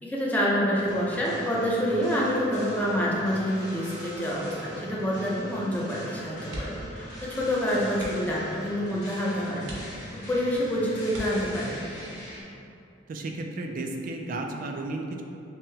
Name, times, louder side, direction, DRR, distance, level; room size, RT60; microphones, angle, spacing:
voice 1, 0.0-9.7 10.1-11.8, equal, 10° left, -6 dB, 0.5 m, -27 dB
sound 1, 0.7-12.4, equal, 65° left, 1.3 m, -42 dB
sound 2, 6.5-7.0 7.3-7.5 7.9-8.4 9.0-9.1 9.6-10.4 11.1-11.9 13.4-13.7 14.1-14.2, right 1 dB, 80° right, 0.7 m, -40 dB
voice 2, 13.1-15.2, right 2 dB, 45° right, 3 dB, 0.3 m, -33 dB
5.5 x 2.1 x 2.7 m, 2.6 s
head